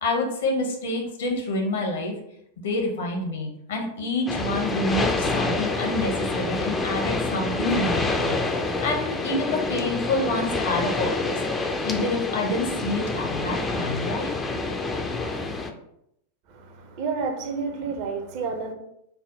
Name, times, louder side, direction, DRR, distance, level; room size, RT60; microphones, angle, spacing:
voice 1, 0.0-2.1 2.6-11.4 11.8-14.3, left 2 dB, 60° left, 1 dB, 0.9 m, -28 dB
sound 1, 4.3-15.7, left 3 dB, 15° left, 0.4 m, -27 dB
voice 2, 16.5-18.7, right 4 dB, 45° right, 3 dB, 0.6 m, -30 dB
3.4 x 2.1 x 3.9 m, 0.77 s
figure-of-eight pair, 90°, 0 cm